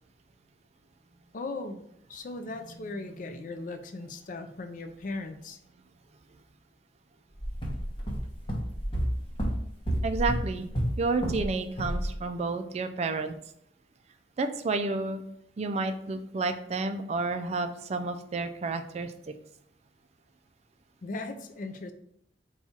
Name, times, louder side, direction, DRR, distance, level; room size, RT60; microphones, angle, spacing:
voice 1, 1.3-1.8 2.1-5.6 21.0-21.9, left 3 dB, 45° left, 7 dB, 0.4 m, -38 dB
sound 1, 7.4-11.5 11.8-12.1, equal, 30° left, 0.9 m, -30 dB
voice 2, 10.0-10.7 11.0-13.3 14.4-15.2 15.6-19.1, right 3 dB, 35° right, 8 dB, 0.3 m, -30 dB
4.2 x 2.3 x 4.2 m, 0.71 s
head